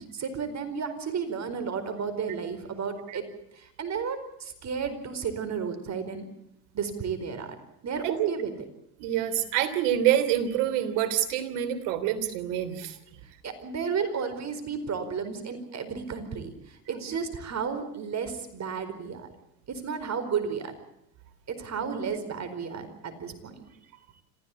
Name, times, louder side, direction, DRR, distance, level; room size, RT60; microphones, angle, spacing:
voice 1, 0.0-3.3 3.5-6.3 6.7-7.6 7.8-8.5 13.2-19.3 19.7-20.7 21.5-23.6, right 6 dB, 35° right, 9 dB, 4.7 m, -33 dB
voice 2, 8.0-8.4 9.0-13.0 21.8-22.2, right 11 dB, 70° right, 10 dB, 3.3 m, -27 dB
27.0 x 15.5 x 8.5 m, 0.80 s
supercardioid pair, 95°, 45 cm